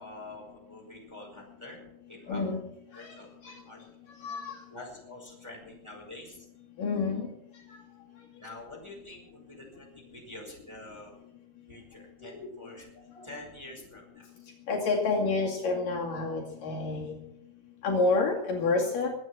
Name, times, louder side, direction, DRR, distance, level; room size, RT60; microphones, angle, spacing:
voice 1, 0.0-1.8 2.1-2.4 2.9-3.8 4.7-6.5 8.4-11.1 11.7-12.9 13.2-14.3, left 1 dB, 5° right, -1 dB, 4.5 m, -46 dB
voice 2, 2.3-2.6 3.0-3.1 3.4-3.6 4.2-4.6 6.8-7.3 12.2-12.4 14.7-17.2 17.8-19.1, left 3 dB, 60° left, -2 dB, 3.8 m, -28 dB
22.5 x 9.4 x 6.0 m, 0.78 s
omnidirectional pair, 4.7 m